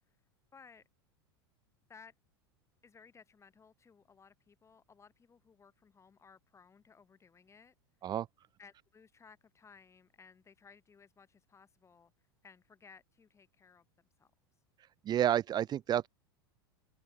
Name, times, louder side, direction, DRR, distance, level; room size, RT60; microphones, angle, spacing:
voice 1, 0.5-0.8 1.9-2.1 2.8-7.7 8.6-12.1 12.4-14.3, left 5 dB, 20° left, 7.3 m, -59 dB
voice 2, 15.0-16.1, right 11 dB, 30° right, 1.0 m, -30 dB
open air
hypercardioid pair, 90°, 13 cm